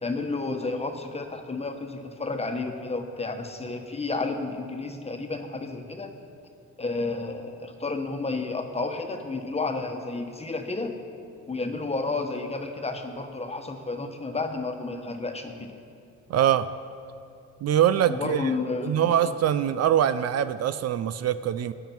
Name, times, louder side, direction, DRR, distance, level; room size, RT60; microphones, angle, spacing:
voice 1, 0.0-6.1 6.8-10.9 11.5-15.7 18.1-19.3, left 3 dB, 20° left, 5 dB, 1.2 m, -31 dB
voice 2, 16.3-16.7 17.6-18.5 18.8-21.7, right 10 dB, 55° right, 12 dB, 0.5 m, -23 dB
16.0 x 9.3 x 4.5 m, 2.5 s
cardioid pair, 90°, 30 cm